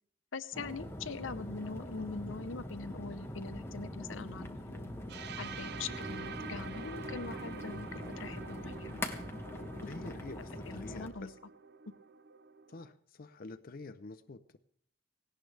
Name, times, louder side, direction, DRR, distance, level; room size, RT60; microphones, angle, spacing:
voice 1, 0.3-4.9 5.4-9.0 9.5-10.2 10.6-11.3, left 4 dB, 80° left, 13 dB, 0.8 m, -43 dB
sound 1, 0.5-11.1, left 1 dB, 15° left, 1.5 m, -43 dB
sound 2, 5.1-12.9, right 5 dB, 55° right, 0.6 m, -47 dB
voice 2, 9.9-11.3 12.7-14.6, left 3 dB, 50° left, 9 dB, 0.6 m, -47 dB
18.0 x 17.0 x 3.4 m, 0.68 s
head